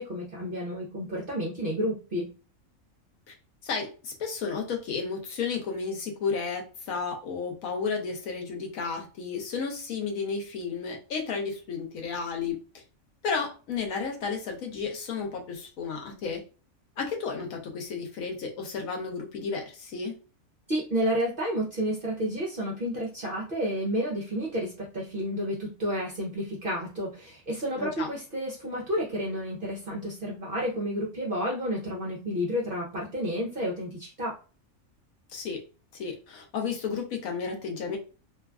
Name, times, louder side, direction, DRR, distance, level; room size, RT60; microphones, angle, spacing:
voice 1, 0.0-2.3 20.7-34.4, equal, 50° right, -2 dB, 0.8 m, -31 dB
voice 2, 3.6-12.6 13.2-16.4 17.0-20.1 27.8-28.1 35.3-35.6 35.9-38.0, left 5 dB, 85° left, 2 dB, 1.2 m, -32 dB
3.1 x 2.3 x 2.3 m, 0.35 s
omnidirectional pair, 1.4 m